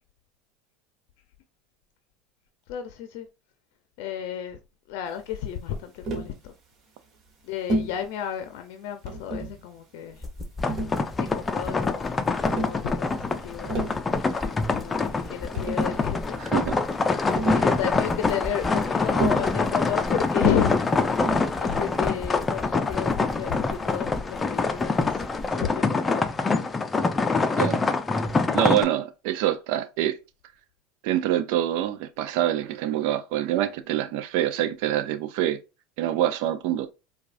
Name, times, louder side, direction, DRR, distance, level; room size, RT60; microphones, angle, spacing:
voice 1, 2.7-3.3 4.0-4.6 4.9-6.5 7.4-10.2 11.2-12.3 12.6-13.9 14.2-16.6 17.5-21.2 21.6-25.2 25.5-26.3, left 9 dB, 70° left, 0.5 m, -32 dB
Tap, 6.0-6.4 7.7-8.0 9.1-9.6 10.7-11.4 12.4-12.8 13.5-14.0 15.2-15.3 15.5-16.1 17.4-17.8 19.1-19.6 21.2-21.5, right 2 dB, 45° right, 1.3 m, -30 dB
sound 1, 10.1-25.5, left 2 dB, ahead, 1.3 m, -40 dB
sound 2, 10.6-28.8, left 3 dB, 20° left, 0.5 m, -25 dB
voice 2, 16.4-16.8 17.5-17.6 27.6-27.8 28.5-30.2 31.0-35.6 36.0-36.9, right 12 dB, 70° right, 0.4 m, -25 dB
4.6 x 2.3 x 2.5 m
supercardioid pair, 95°, 0 cm